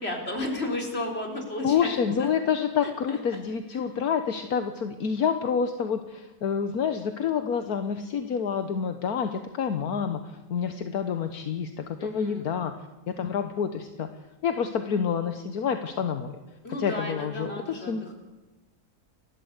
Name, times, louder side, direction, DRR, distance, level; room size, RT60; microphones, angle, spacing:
voice 1, 0.0-2.3 2.8-3.4 12.0-12.5 16.6-18.1, left 1 dB, 40° left, 2 dB, 4.6 m, -33 dB
voice 2, 1.6-10.2 10.5-12.7 13.2-14.1 14.4-16.3 16.8-18.0, left 7 dB, 75° left, 8 dB, 1.6 m, -28 dB
29.5 x 12.5 x 8.2 m, 1.2 s
omnidirectional pair, 1.6 m